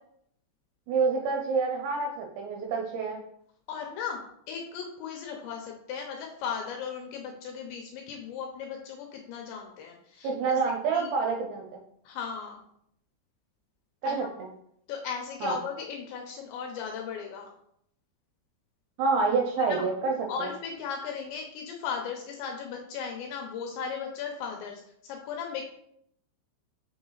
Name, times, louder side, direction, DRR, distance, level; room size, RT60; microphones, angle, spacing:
voice 1, 0.9-3.2 10.2-11.7 14.0-14.5 15.4-15.6 19.0-20.5, right 4 dB, 75° right, 2 dB, 2.7 m, -27 dB
voice 2, 3.7-4.2 4.5-11.1 12.0-12.6 14.0-14.3 14.9-17.5 19.6-19.8 20.3-25.6, left 6 dB, 75° left, 2 dB, 2.8 m, -37 dB
6.9 x 6.1 x 3.9 m, 0.72 s
omnidirectional pair, 5.9 m